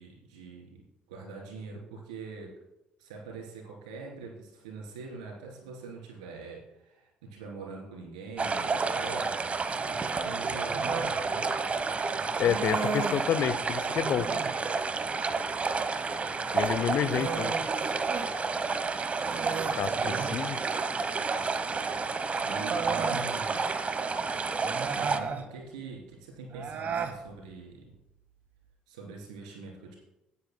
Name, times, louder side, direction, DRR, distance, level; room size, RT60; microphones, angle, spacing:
voice 1, 0.0-2.5 3.0-9.4 9.8-11.5 19.3-20.4 22.4-23.6 24.0-24.2 25.0-27.9 28.9-30.0, right 4 dB, 85° right, -1 dB, 3.4 m, -44 dB
sound 1, 8.4-25.2, right 4 dB, 35° right, 1.1 m, -30 dB
Human voice, 10.7-11.2 12.4-13.3 14.0-14.6 16.5-18.3 18.6-18.7 19.2-20.5 21.7-21.8 22.4-23.2 24.6-25.5 26.5-27.2, right 5 dB, 55° right, 1.5 m, -34 dB
voice 2, 12.4-14.3 16.5-17.5 19.8-20.6, left 9 dB, 60° left, 15 dB, 0.6 m, -29 dB
25.5 x 9.7 x 2.2 m, 0.92 s
hypercardioid pair, 50°, 4 cm